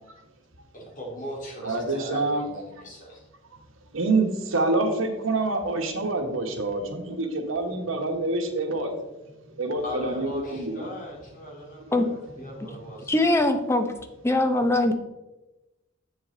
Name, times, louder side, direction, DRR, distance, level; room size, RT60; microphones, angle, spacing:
voice 1, 0.7-3.2 9.8-13.1, equal, 40° left, -2 dB, 2.5 m, -39 dB
voice 2, 1.6-2.4 3.9-8.9 9.6-10.9, right 2 dB, 85° right, 4 dB, 1.3 m, -26 dB
voice 3, 13.1-13.9 14.2-14.9, left 2 dB, 15° left, 6 dB, 0.7 m, -21 dB
7.7 x 6.9 x 3.8 m, 1.0 s
head